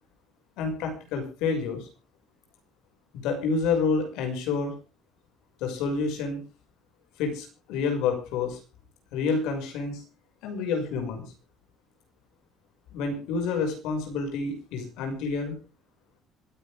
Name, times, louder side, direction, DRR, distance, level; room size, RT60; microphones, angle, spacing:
voice 1, 0.6-1.9 3.1-4.7 5.6-6.4 7.2-8.6 9.1-10.0 10.4-11.2 12.9-15.5, left 4 dB, 90° left, 4 dB, 5.9 m, -28 dB
26.0 x 10.0 x 3.6 m, 0.33 s
cardioid pair, 175°, 0 cm